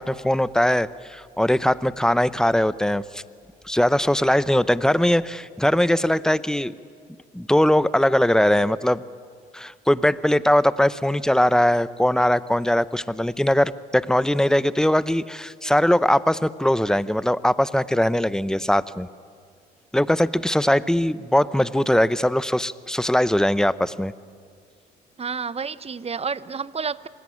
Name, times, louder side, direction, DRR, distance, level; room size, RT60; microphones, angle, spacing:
voice 1, 0.0-3.2 3.7-6.7 7.3-9.0 9.5-19.1 19.9-24.1, left 1 dB, 5° left, 17 dB, 0.8 m, -21 dB
voice 2, 25.2-27.1, right 5 dB, 30° right, 17 dB, 0.9 m, -30 dB
27.5 x 19.5 x 8.7 m, 2.1 s
hypercardioid pair, 60°, 20 cm